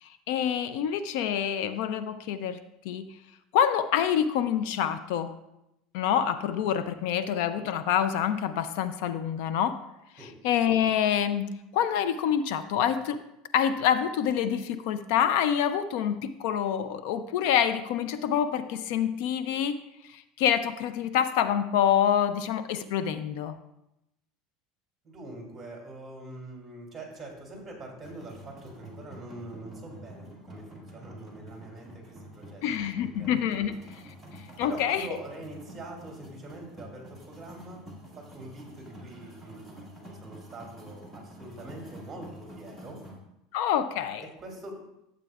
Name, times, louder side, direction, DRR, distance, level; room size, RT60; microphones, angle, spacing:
voice 1, 0.3-2.6 2.8-3.1 3.5-5.3 5.9-9.8 10.4-13.2 13.5-19.8 20.1-23.5 32.6-33.8 34.4-35.1 43.5-44.3, left 9 dB, 70° left, 12 dB, 0.4 m, -26 dB
voice 2, 25.0-32.6 33.0-33.7 34.6-37.8 38.2-43.0 44.2-44.8, right 2 dB, 15° right, -1 dB, 2.6 m, -44 dB
Marrakesh Ambient loop, 28.0-43.2, equal, 5° left, 1.9 m, -48 dB
12.5 x 8.0 x 2.4 m, 0.86 s
supercardioid pair, 145°, 0 cm